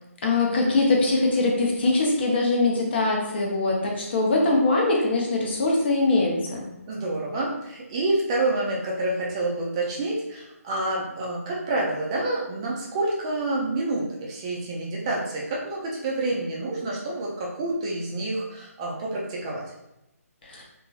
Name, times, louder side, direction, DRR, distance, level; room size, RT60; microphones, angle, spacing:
voice 1, 0.2-6.6 20.4-20.6, left 2 dB, 40° left, -1 dB, 0.7 m, -22 dB
voice 2, 6.9-19.6, right 2 dB, 20° right, -3 dB, 0.4 m, -28 dB
2.7 x 2.6 x 2.3 m, 0.89 s
figure-of-eight pair, 155°, 8 cm